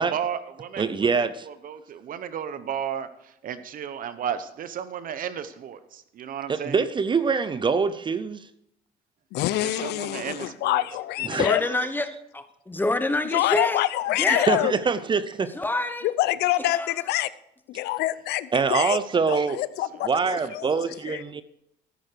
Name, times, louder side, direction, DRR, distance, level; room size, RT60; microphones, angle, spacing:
voice 1, 0.0-6.8 9.6-10.8 20.4-20.5, right 8 dB, 55° right, 1.0 m, -34 dB
voice 2, 0.8-1.5 6.5-8.5 11.2-11.5 14.3-15.5 18.5-19.6 20.0-21.4, right 5 dB, 30° right, 0.6 m, -24 dB
voice 3, 9.3-11.6 13.3-14.7 16.0-17.3 17.7-19.0 19.3-21.2, left 15 dB, 80° left, 0.6 m, -26 dB
voice 4, 11.3-12.1 12.3-13.8 14.2-14.7 15.5-16.1 16.6-16.9, left 2 dB, 10° left, 1.0 m, -27 dB
13.5 x 9.7 x 4.7 m
cardioid pair, 110°, 17 cm